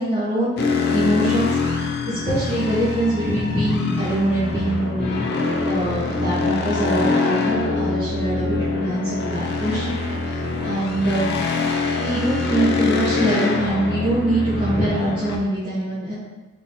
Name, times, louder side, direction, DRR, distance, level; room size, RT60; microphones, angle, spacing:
voice 1, 0.0-1.6 2.1-5.2 5.6-9.9 10.2-11.3 11.9-16.1, right 1 dB, 25° right, -14 dB, 1.1 m, -23 dB
sound 1, 0.6-15.4, left 3 dB, 50° left, 0.4 m, -24 dB
3.7 x 3.2 x 2.7 m, 1.2 s
head